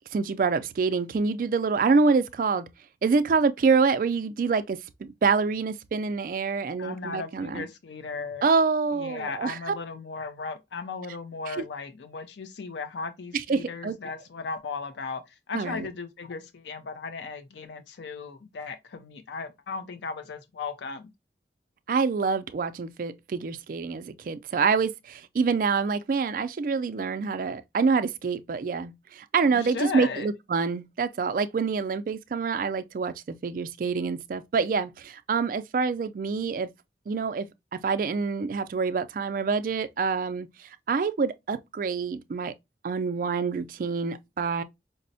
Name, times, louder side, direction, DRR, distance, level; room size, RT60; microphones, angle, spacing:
voice 1, 0.1-2.7 3.0-7.7 8.4-9.6 11.6-11.7 13.5-14.0 15.5-15.9 21.9-36.7 37.1-40.5 40.9-42.5 42.8-44.6, right 4 dB, 50° right, 0.3 m, -26 dB
voice 2, 6.8-8.4 8.9-21.1 29.5-30.3, left 4 dB, 80° left, 0.5 m, -36 dB
5.1 x 2.0 x 2.6 m
head